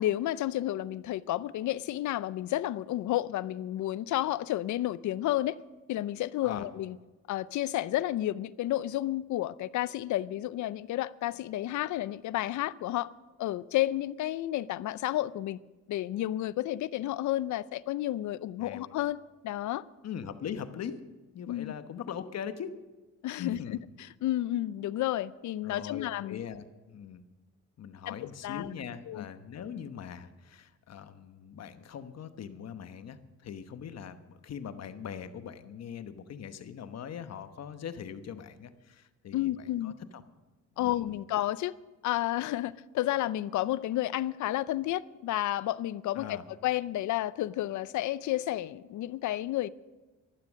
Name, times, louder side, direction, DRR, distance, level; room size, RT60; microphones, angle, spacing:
voice 1, 0.0-5.6 5.9-7.0 7.3-13.1 13.4-15.6 15.9-19.8 21.5-21.7 23.2-26.4 28.1-28.7 29.1-29.3 39.3-39.9 40.8-41.7 42.0-46.4 46.6-49.7, left 14 dB, 75° left, 0.5 m, -31 dB
voice 2, 20.0-21.0 21.3-22.8 23.4-23.8 25.6-27.2 27.8-40.2 40.8-41.1 46.1-46.4, left 8 dB, 60° left, 1.1 m, -41 dB
13.5 x 12.0 x 6.4 m
cardioid pair, 90°, 30 cm